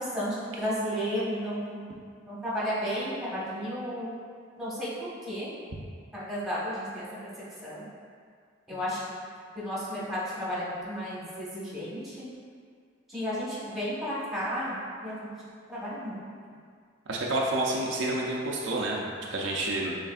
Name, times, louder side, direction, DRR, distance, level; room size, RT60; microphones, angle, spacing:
voice 1, 0.1-1.9 2.3-4.1 4.6-4.9 5.2-5.5 6.1-7.3 7.6-7.8 8.7-9.0 9.5-12.3 13.1-15.2 15.7-16.2, equal, ahead, -9 dB, 1.3 m, -33 dB
voice 2, 17.1-19.9, right 2 dB, 70° right, -2 dB, 0.5 m, -29 dB
6.8 x 3.2 x 2.4 m, 2.1 s
head